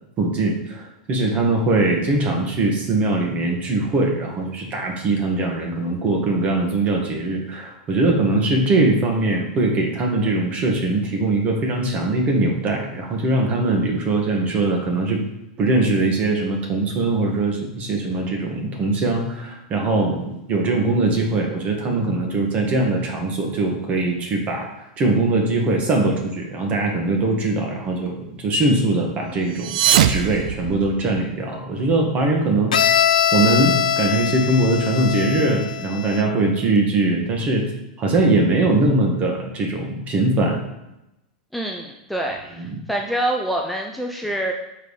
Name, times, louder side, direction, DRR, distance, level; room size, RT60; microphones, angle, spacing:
voice 1, 0.2-15.2 15.6-29.7 30.1-33.1 33.3-37.6 38.0-40.6, right 2 dB, 35° right, 2 dB, 1.5 m, -21 dB
sound 1, 29.5-31.4, right 10 dB, 70° right, 0.4 m, -21 dB
Bowed string instrument, 32.7-36.5, left 9 dB, 85° left, 0.3 m, -22 dB
voice 2, 41.5-44.5, right 1 dB, ahead, 1 dB, 0.6 m, -26 dB
5.4 x 3.7 x 4.9 m, 0.90 s
hypercardioid pair, 105°, 4 cm